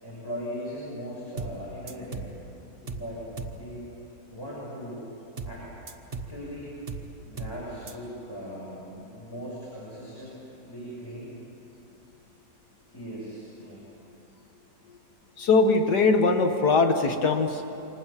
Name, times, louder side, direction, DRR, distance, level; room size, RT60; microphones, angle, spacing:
voice 1, 0.0-2.3 2.9-3.2 3.5-3.9 4.3-5.0 5.5-5.7 6.3-6.7 7.3-10.4 10.7-11.3 12.9-13.8, equal, 15° left, -8 dB, 7.3 m, -39 dB
sound 1, 1.4-1.6 1.9-2.4 2.9-3.1 3.4-3.6 5.4-5.6 5.9-6.4 6.9-7.1 7.4-7.6 7.9-8.0, right 3 dB, 40° right, 1.4 m, -36 dB
voice 2, 15.4-17.6, left 3 dB, 80° left, 5 dB, 2.0 m, -21 dB
29.0 x 26.5 x 7.4 m, 2.9 s
omnidirectional pair, 1.7 m